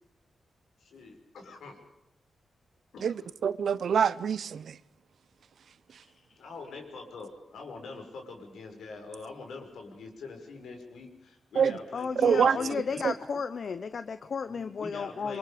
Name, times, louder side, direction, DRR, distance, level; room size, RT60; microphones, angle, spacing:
voice 1, 0.8-1.8 2.9-3.3 6.4-13.1 14.4-15.4, left 4 dB, 90° left, 5.8 m, -44 dB
voice 2, 3.0-4.8 11.6-11.8 12.2-13.1, right 7 dB, 70° right, 0.8 m, -26 dB
voice 3, 11.9-15.4, left 5 dB, 50° left, 0.9 m, -33 dB
27.5 x 24.0 x 5.1 m
wide cardioid pair, 135°, 0 cm